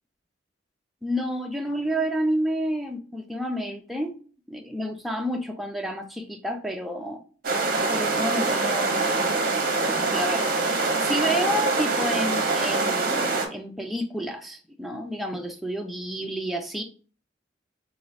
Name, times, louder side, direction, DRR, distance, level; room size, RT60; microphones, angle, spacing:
voice 1, 1.0-4.2 4.5-7.2 7.9-9.1 9.9-10.6 11.0-16.8, equal, ahead, 0.4 m, -30 dB
sound 1, 7.4-13.5, right 3 dB, 45° right, 0.7 m, -24 dB
3.9 x 2.6 x 3.1 m
head